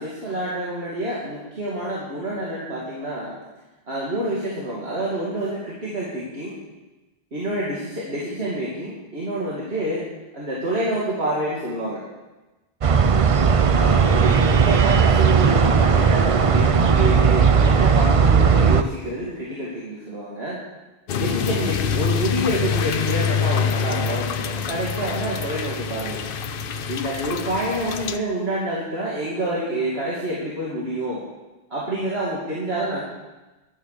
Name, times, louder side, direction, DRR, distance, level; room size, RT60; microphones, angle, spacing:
voice 1, 0.0-3.3 3.9-6.6 7.3-12.0 13.7-20.6 21.2-26.2 26.9-31.2 31.7-33.0, right 1 dB, 70° right, -6 dB, 2.7 m, -27 dB
sound 1, 12.8-18.8, right 6 dB, 40° right, 0.5 m, -17 dB
sound 2, 21.1-28.2, left 7 dB, 60° left, 0.8 m, -26 dB
11.5 x 10.0 x 6.7 m, 1.1 s
omnidirectional pair, 1.1 m